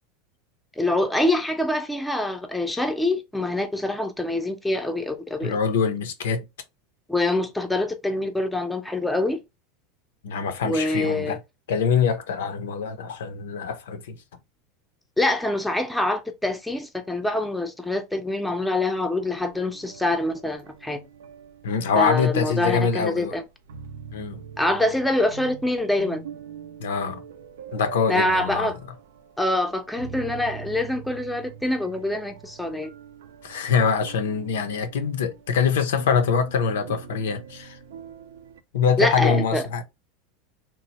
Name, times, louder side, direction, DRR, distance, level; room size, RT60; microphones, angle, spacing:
voice 1, 0.8-5.6 7.1-9.4 10.6-11.4 15.2-21.0 22.0-23.4 24.6-26.2 28.1-28.7 29.4-32.9 39.0-39.6, left 1 dB, 5° left, 0.5 m, -25 dB
voice 2, 5.4-6.4 10.2-11.4 11.7-14.2 21.6-23.4 24.1-24.4 26.8-27.2 27.7-28.7 33.4-37.8 38.7-39.8, left 6 dB, 90° left, 0.5 m, -24 dB
sound 1, 19.2-38.6, right 7 dB, 85° right, 0.4 m, -43 dB
2.9 x 2.0 x 2.9 m
supercardioid pair, 115°, 0 cm